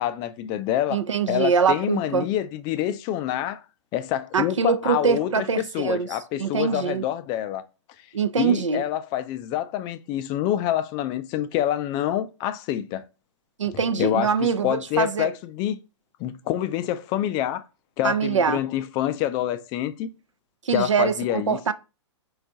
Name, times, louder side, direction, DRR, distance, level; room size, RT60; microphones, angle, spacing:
voice 1, 0.0-3.6 3.9-7.6 8.4-13.0 13.9-15.8 16.2-17.6 18.0-20.1 20.7-21.6, left 12 dB, 30° left, 0.4 m, -27 dB
voice 2, 0.9-2.3 4.3-6.1 6.4-7.0 8.1-8.8 13.6-15.3 18.0-18.6 20.7-21.7, right 6 dB, 90° right, 0.5 m, -23 dB
4.3 x 2.4 x 3.9 m
hypercardioid pair, 125°, 15 cm